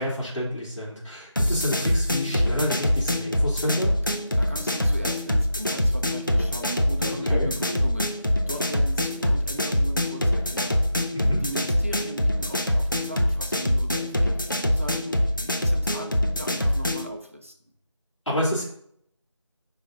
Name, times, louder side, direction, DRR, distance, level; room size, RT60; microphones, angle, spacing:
voice 1, 0.0-3.9 7.3-7.5 11.1-11.4 18.2-18.6, left 1 dB, 80° left, -7 dB, 3.4 m, -28 dB
sound 1, 1.4-17.1, left 1 dB, 40° left, 0.7 m, -24 dB
voice 2, 4.2-10.7 11.4-17.5, right 1 dB, 25° right, 3 dB, 0.8 m, -38 dB
8.3 x 5.1 x 3.8 m, 0.67 s
figure-of-eight pair, 175°, 16 cm